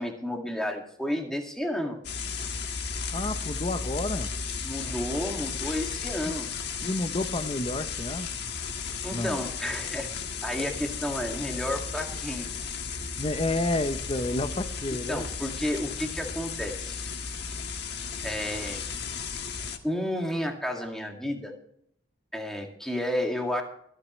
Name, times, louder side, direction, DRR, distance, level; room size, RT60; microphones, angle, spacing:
voice 1, 0.0-2.0 4.6-6.5 9.0-10.1 10.4-12.5 15.1-16.9 17.3-17.4 18.2-18.8 19.8-21.5 22.3-23.6, left 1 dB, ahead, 1 dB, 2.0 m, -31 dB
sound 1, 2.0-19.8, left 5 dB, 55° left, 1.4 m, -34 dB
voice 2, 3.1-4.3 6.2-6.3 6.8-8.4 9.1-9.4 13.2-15.3, left 2 dB, 30° left, 10 dB, 0.6 m, -30 dB
24.0 x 8.9 x 3.1 m, 0.69 s
head